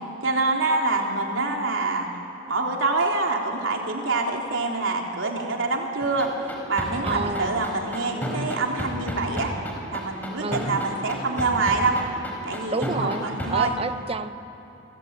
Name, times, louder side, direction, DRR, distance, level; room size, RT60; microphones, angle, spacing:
voice 1, 0.2-2.1 2.5-6.3 6.7-9.5 9.9-12.0 12.4-13.8, right 3 dB, 90° right, 1 dB, 3.5 m, -25 dB
sound 1, 6.0-13.5, equal, 10° left, 5.0 m, -31 dB
voice 2, 7.0-7.7 10.4-10.7 12.7-14.3, right 3 dB, 30° right, 11 dB, 0.9 m, -30 dB
29.5 x 22.0 x 9.0 m, 2.9 s
head